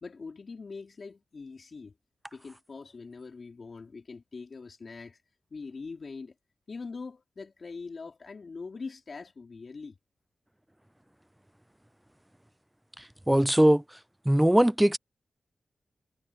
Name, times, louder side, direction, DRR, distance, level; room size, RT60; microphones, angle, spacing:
voice 1, 0.0-1.9 2.3-5.2 5.5-6.3 6.7-10.0, left 4 dB, 50° left, 3.6 m, -42 dB
voice 2, 13.0-13.8 14.3-15.0, right 1 dB, 5° right, 0.5 m, -21 dB
wide cardioid pair, 80°, 0 cm